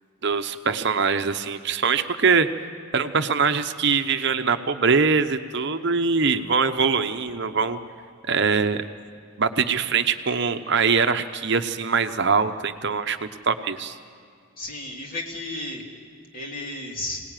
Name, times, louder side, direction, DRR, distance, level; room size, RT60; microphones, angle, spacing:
voice 1, 0.2-2.5 2.9-7.8 8.3-8.8 9.4-13.9, right 5 dB, 50° right, 8 dB, 0.8 m, -23 dB
voice 2, 14.6-15.8 16.3-17.2, left 2 dB, 40° left, 0 dB, 3.1 m, -33 dB
26.5 x 18.5 x 9.1 m, 2.3 s
head